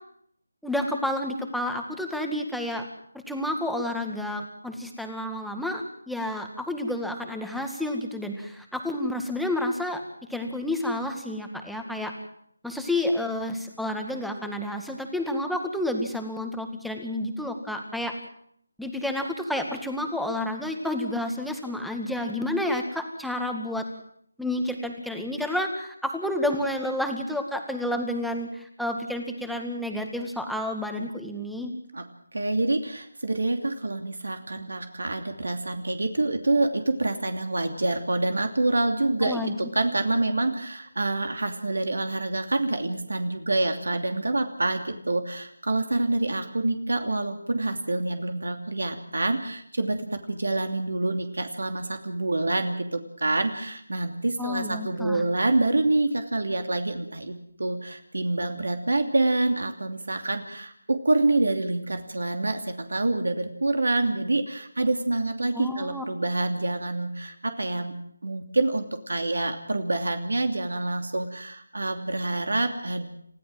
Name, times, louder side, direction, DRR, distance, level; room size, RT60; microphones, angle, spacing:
voice 1, 0.6-2.9 3.1-10.0 10.3-12.1 12.6-18.1 18.8-23.8 24.4-31.7 39.2-39.5 54.4-55.2 65.5-66.0, left 1 dB, ahead, 3 dB, 2.0 m, -30 dB
voice 2, 32.3-67.9 68.2-73.1, right 2 dB, 70° right, 7 dB, 2.8 m, -27 dB
30.0 x 15.0 x 7.7 m, 0.70 s
figure-of-eight pair, 160°, 0 cm